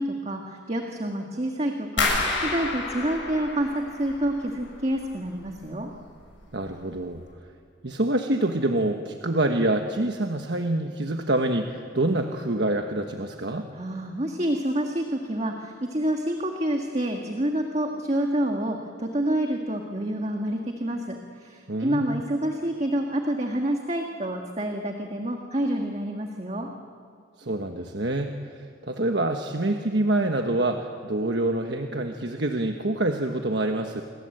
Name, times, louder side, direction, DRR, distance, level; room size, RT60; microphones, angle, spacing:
voice 1, 0.0-5.9 13.7-26.7, right 1 dB, 35° right, 2 dB, 1.7 m, -28 dB
sound 1, 2.0-4.8 5.1-5.8 6.2-6.6 7.0-7.2, left 3 dB, 85° left, 8.0 m, -29 dB
voice 2, 6.5-7.2 7.8-13.7 21.7-22.2 27.4-34.0, right 1 dB, 65° right, 4 dB, 1.3 m, -26 dB
28.5 x 22.0 x 7.9 m, 2.3 s
head